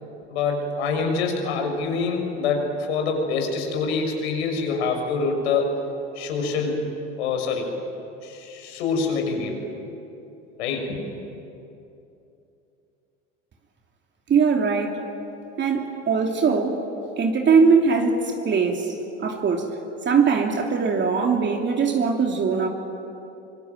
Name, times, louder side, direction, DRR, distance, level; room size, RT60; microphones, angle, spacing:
voice 1, 0.3-5.8 6.1-6.8 7.2-7.7 8.2-9.6 10.6-11.0, left 4 dB, 70° left, 3 dB, 6.4 m, -25 dB
voice 2, 14.3-15.0 15.6-16.8 17.2-18.9 19.2-19.7 20.0-22.7, right 5 dB, 30° right, 2 dB, 2.9 m, -21 dB
25.5 x 24.5 x 9.2 m, 2.8 s
hypercardioid pair, 80°, 34 cm